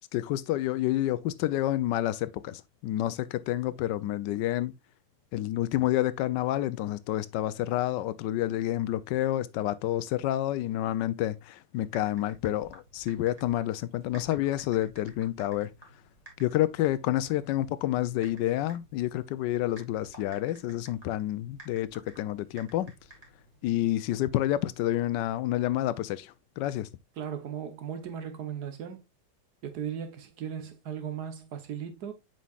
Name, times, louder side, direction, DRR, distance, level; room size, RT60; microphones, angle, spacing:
voice 1, 0.1-4.7 5.3-15.7 16.4-22.9 23.6-26.9, left 14 dB, 85° left, 1.2 m, -29 dB
Typing, 11.7-23.7, right 2 dB, 20° right, 2.1 m, -55 dB
voice 2, 27.2-29.0 29.6-32.1, right 8 dB, 65° right, 1.5 m, -37 dB
7.5 x 5.4 x 2.3 m
omnidirectional pair, 1.9 m